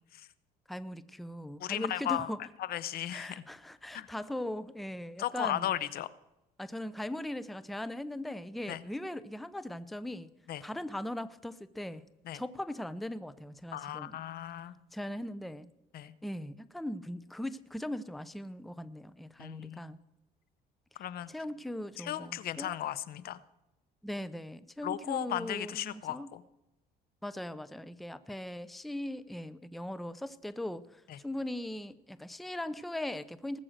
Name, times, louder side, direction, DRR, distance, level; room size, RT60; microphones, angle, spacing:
voice 1, 0.7-2.4 3.1-5.7 6.6-10.3 10.6-12.1 12.3-14.2 14.9-15.7 16.2-20.0 21.3-22.8 24.0-26.3 27.2-33.6, left 1 dB, ahead, 15 dB, 0.5 m, -39 dB
voice 2, 1.6-2.3 2.6-3.4 3.9-4.1 5.2-6.1 8.7-8.8 10.5-10.6 12.3-12.4 13.7-14.7 15.9-16.1 19.4-19.8 21.0-21.3 22.0-23.4 24.8-26.4 31.1-31.2, left 12 dB, 65° left, 17 dB, 0.7 m, -36 dB
19.0 x 7.6 x 6.5 m, 0.94 s
cardioid pair, 110°, 17 cm